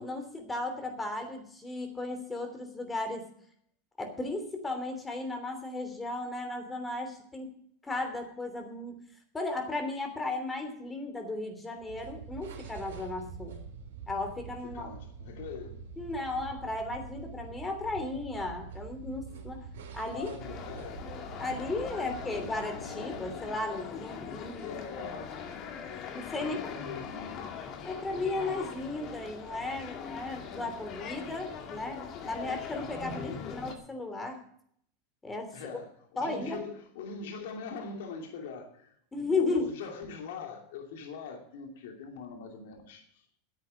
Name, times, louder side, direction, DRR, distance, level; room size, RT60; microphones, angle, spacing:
voice 1, 0.0-3.2 4.0-7.5 7.8-9.0 9.3-13.5 14.1-14.9 16.0-19.7 19.9-20.3 21.4-24.7 26.1-26.6 27.8-34.4 35.2-35.8 36.2-36.6 39.1-39.7, left 2 dB, 15° left, 3.0 m, -35 dB
sound 1, 11.8-24.0, right 6 dB, 80° right, 3.4 m, -46 dB
voice 2, 14.6-15.8 20.0-21.1 21.9-22.7 24.6-25.4 26.4-27.5 33.0-33.3 35.5-35.9 36.2-43.3, left 5 dB, 75° left, 2.7 m, -42 dB
sound 2, 20.4-33.7, left 7 dB, 45° left, 2.2 m, -41 dB
10.5 x 8.4 x 8.9 m
hypercardioid pair, 110°, 0 cm